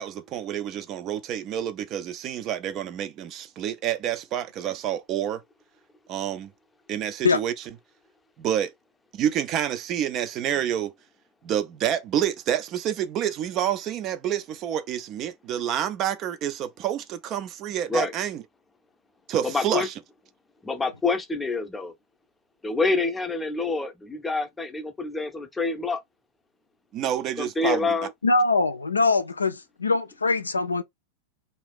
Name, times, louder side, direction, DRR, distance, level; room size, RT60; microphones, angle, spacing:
voice 1, 0.0-5.4 6.1-6.5 6.9-7.7 8.4-8.7 9.1-10.9 11.4-18.4 19.3-19.9 26.9-27.9, right 10 dB, 35° right, 0.4 m, -28 dB
voice 2, 19.4-19.9 20.6-21.9 22.6-26.0 27.4-28.1, left 3 dB, 10° left, 0.6 m, -27 dB
voice 3, 28.2-30.8, left 3 dB, 80° left, 0.3 m, -22 dB
2.6 x 2.3 x 3.4 m
figure-of-eight pair, 90°, 0 cm